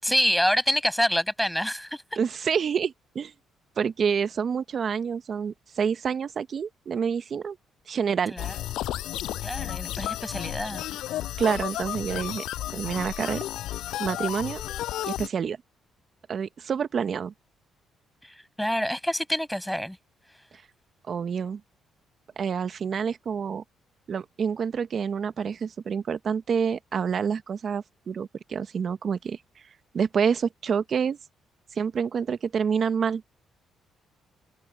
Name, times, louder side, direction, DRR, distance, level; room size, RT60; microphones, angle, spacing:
voice 1, 0.0-2.0 8.3-8.5 9.4-10.8 18.2-20.0, equal, ahead, 6.7 m, -26 dB
voice 2, 2.2-3.3 3.8-7.6 7.9-8.3 11.4-12.4 12.7-13.4 14.0-14.6 15.1-15.6 16.3-17.3 21.1-21.6 22.4-23.6 24.1-29.4 29.9-31.2 31.7-33.2, right 6 dB, 50° right, 1.2 m, -27 dB
sound 1, 8.4-15.3, left 14 dB, 85° left, 6.5 m, -32 dB
cardioid pair, 90°, 0 cm